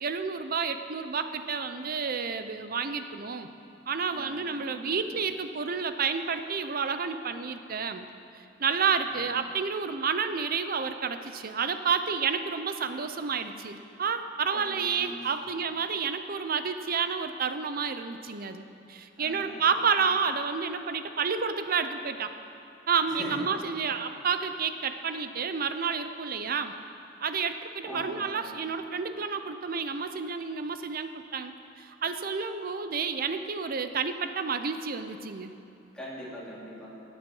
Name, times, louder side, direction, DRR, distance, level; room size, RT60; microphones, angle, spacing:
voice 1, 0.0-3.5 3.9-8.0 8.6-22.3 22.9-26.7 27.2-35.5, right 5 dB, 50° right, 9 dB, 0.6 m, -30 dB
voice 2, 4.1-5.1 9.1-9.4 14.5-15.3 19.2-20.1 23.1-23.6 27.8-28.6 35.9-37.0, equal, 5° left, -7 dB, 3.1 m, -43 dB
15.5 x 8.5 x 5.5 m, 2.9 s
head